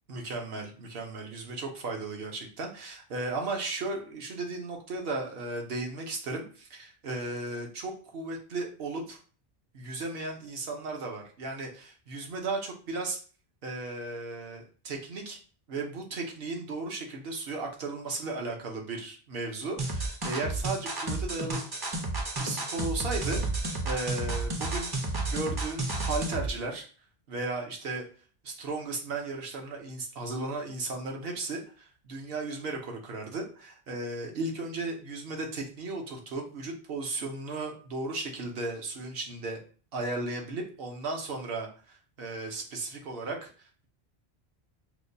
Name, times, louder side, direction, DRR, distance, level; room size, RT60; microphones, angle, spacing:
voice 1, 0.1-9.2 9.7-13.2 13.6-15.4 15.7-21.7 22.4-24.9 25.2-26.9 27.3-28.1 28.4-39.6 39.9-43.5, right 3 dB, 70° right, 2 dB, 0.9 m, -35 dB
sound 1, 19.8-26.5, right 2 dB, 30° right, 0.4 m, -31 dB
4.7 x 2.1 x 2.6 m, 0.40 s
omnidirectional pair, 1.1 m